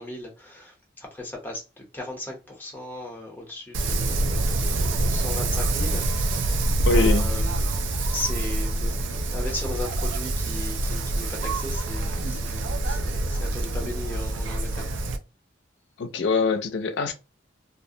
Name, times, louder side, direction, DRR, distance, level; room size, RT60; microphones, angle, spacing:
voice 1, 0.0-7.8 8.1-14.9, left 2 dB, 10° left, 0.7 m, -37 dB
Wind, 3.7-15.2, right 2 dB, 85° right, 0.4 m, -26 dB
voice 2, 6.9-7.3 16.0-17.1, left 4 dB, 70° left, 0.4 m, -23 dB
2.4 x 2.0 x 2.6 m
head